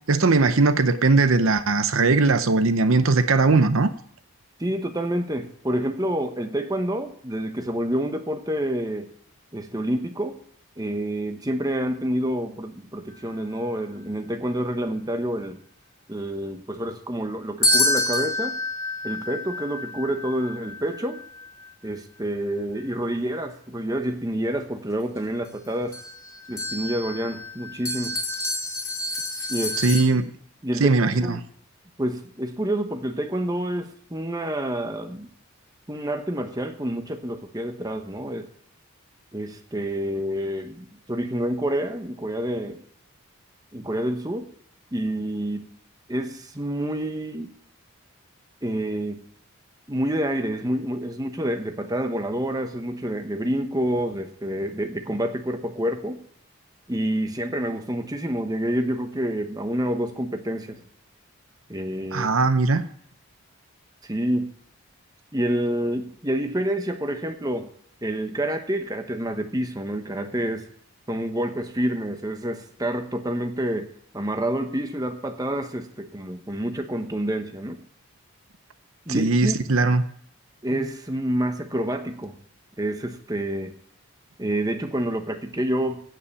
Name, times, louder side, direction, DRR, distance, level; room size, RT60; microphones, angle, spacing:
voice 1, 0.1-3.9 29.8-30.3 30.8-31.4 62.1-62.9 79.1-80.0, right 3 dB, 70° right, 0.7 m, -19 dB
voice 2, 4.6-9.1 9.5-10.4 10.8-15.6 16.1-18.6 19.0-21.2 21.8-26.0 26.5-28.2 29.5-29.8 30.6-31.4 32.0-35.3 35.9-38.5 39.3-42.8 43.7-44.5 44.9-45.7 46.1-47.5 48.6-49.2 49.9-56.2 56.9-60.8 61.7-62.3 64.0-64.5 65.3-67.7 68.0-70.7 71.1-77.8 79.1-79.6 80.6-82.3 82.8-83.7 84.4-86.0, right 1 dB, 15° right, 1.1 m, -28 dB
sound 1, 17.6-21.5 25.5-25.6 25.9-30.0, left 1 dB, 15° left, 2.5 m, -28 dB
16.5 x 5.6 x 7.1 m
head